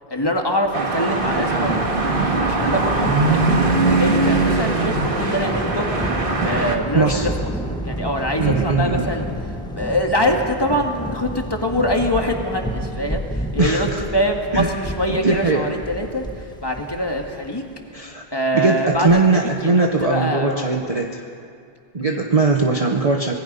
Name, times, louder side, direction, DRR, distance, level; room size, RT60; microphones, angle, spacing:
voice 1, 0.1-1.8 2.0-5.9 6.4-7.5 7.8-9.3 9.8-17.6 18.3-20.7 22.0-22.2, equal, 20° left, 2 dB, 2.0 m, -24 dB
sound 1, 0.7-6.8, right 3 dB, 55° right, 1.9 m, -21 dB
Thunder, 1.0-17.6, equal, 5° left, 1.5 m, -29 dB
voice 2, 6.9-7.3 8.4-9.1 13.6-14.0 14.5-14.8 15.2-15.7 17.9-18.2 18.5-21.2 21.9-23.3, right 3 dB, 35° right, 1 dB, 1.1 m, -20 dB
25.5 x 20.0 x 5.5 m, 2.3 s
omnidirectional pair, 1.1 m